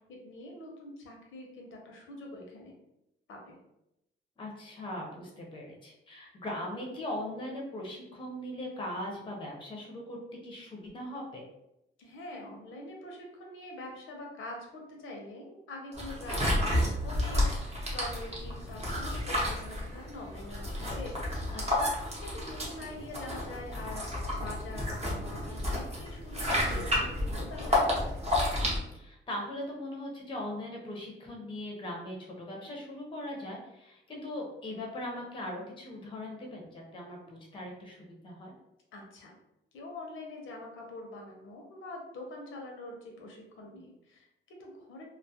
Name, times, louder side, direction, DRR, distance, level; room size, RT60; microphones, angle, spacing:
voice 1, 0.1-2.7 3.3-3.6 12.0-21.5 22.2-24.0 24.3-28.2 38.9-39.4 39.7-45.0, left 2 dB, 80° left, 1 dB, 0.6 m, -45 dB
voice 2, 4.4-10.2 10.4-11.4 21.5-21.9 26.6-27.1 28.9-38.0 38.2-38.5, left 1 dB, 25° left, -1 dB, 0.5 m, -40 dB
sound 1, 15.9-28.8, left 1 dB, 30° right, 0.7 m, -31 dB
2.2 x 2.0 x 2.7 m, 0.85 s
cardioid pair, 145°, 20 cm